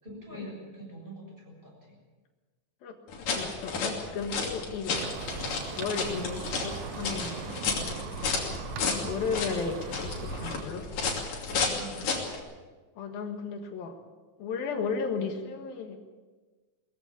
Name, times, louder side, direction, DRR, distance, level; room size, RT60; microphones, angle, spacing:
voice 1, 0.0-1.7 7.6-8.3 11.8-12.0, right 1 dB, 15° right, -2 dB, 7.1 m, -45 dB
sound 1, 3.1-12.4, left 4 dB, 65° left, 4.3 m, -32 dB
voice 2, 3.3-5.0 5.8-7.4 8.7-10.9 13.0-14.0 14.4-16.0, left 5 dB, 80° left, 4 dB, 3.5 m, -34 dB
sound 2, 4.9-10.6, right 10 dB, 75° right, 2.5 m, -41 dB
20.5 x 14.5 x 8.6 m, 1.3 s
omnidirectional pair, 4.1 m